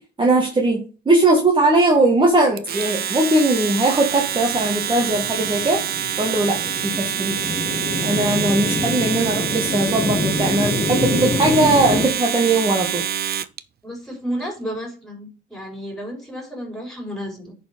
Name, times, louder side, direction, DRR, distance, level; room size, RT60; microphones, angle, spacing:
voice 1, 0.2-5.8 6.2-7.3 8.0-13.0, right 2 dB, 25° right, 0 dB, 1.6 m, -19 dB
Domestic sounds home sounds, 2.6-13.6, right 9 dB, 55° right, 0.6 m, -26 dB
sound 1, 4.4-12.1, left 2 dB, 35° left, 2.3 m, -27 dB
voice 2, 13.8-17.6, equal, ahead, 0 dB, 4.6 m, -32 dB
10.0 x 4.5 x 5.1 m, 0.37 s
cardioid pair, 90°, 20 cm